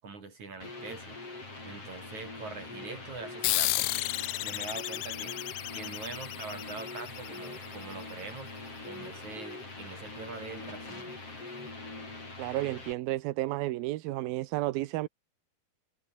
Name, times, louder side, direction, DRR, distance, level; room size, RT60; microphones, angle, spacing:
voice 1, 0.0-1.2 1.6-4.1 4.4-5.4 5.7-8.5 8.9-11.2, right 4 dB, 50° right, 7.4 m, -43 dB
sound 1, 0.6-12.9, left 3 dB, 40° left, 8.7 m, -43 dB
sound 2, 3.4-8.4, left 20 dB, 80° left, 2.3 m, -33 dB
voice 2, 12.4-15.1, right 17 dB, 85° right, 2.7 m, -32 dB
omnidirectional pair, 4.2 m